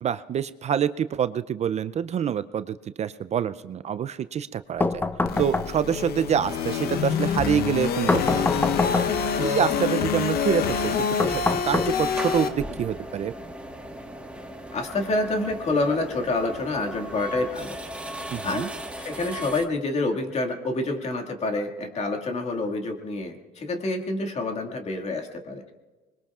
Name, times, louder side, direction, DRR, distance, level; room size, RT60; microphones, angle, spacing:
voice 1, 0.0-5.0 5.4-9.0 9.4-13.3 18.3-18.7, right 8 dB, 40° right, 14 dB, 0.4 m, -26 dB
sound 1, 4.8-6.1 8.1-9.4 11.2-12.4, left 2 dB, 10° left, 0.5 m, -26 dB
sound 2, 5.3-12.5, left 7 dB, 65° left, 0.9 m, -26 dB
sound 3, 7.1-19.7, right 1 dB, 5° right, 1.5 m, -39 dB
voice 2, 14.7-17.8 18.4-18.7 19.0-25.7, left 2 dB, 40° left, 3 dB, 2.0 m, -27 dB
25.0 x 21.5 x 2.4 m, 1.3 s
cardioid pair, 110°, 17 cm